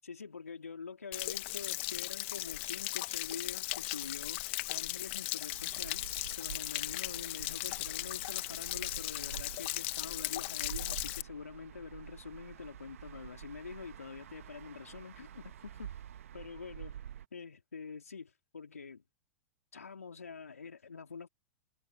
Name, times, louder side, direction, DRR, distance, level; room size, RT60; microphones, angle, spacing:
voice 1, 0.0-16.0 16.3-17.0 17.3-19.0 19.7-21.3, left 5 dB, 80° left, 3.0 m, -46 dB
Stream / Splash splatter / Trickle dribble, 1.1-11.2, left 22 dB, 50° left, 0.9 m, -37 dB
sound 1, 5.5-17.3, right 10 dB, 65° right, 1.4 m, -48 dB
figure-of-eight pair, 95°, 8 cm